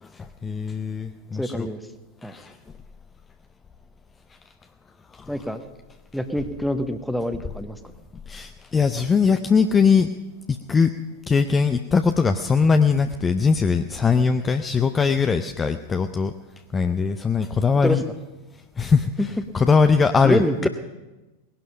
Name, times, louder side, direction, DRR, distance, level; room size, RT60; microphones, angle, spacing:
voice 1, 0.0-1.7 2.2-2.6 5.1-5.3 8.3-10.1 10.5-10.9 11.3-16.3 16.7-18.0 18.8-20.7, left 5 dB, 20° left, 8 dB, 0.5 m, -21 dB
voice 2, 1.4-1.8 2.2-2.3 5.3-5.6 6.1-7.8 17.8-18.0 19.2-19.3 20.2-20.7, equal, ahead, 9 dB, 1.1 m, -25 dB
19.0 x 11.5 x 5.6 m, 1.1 s
figure-of-eight pair, 90°, 0 cm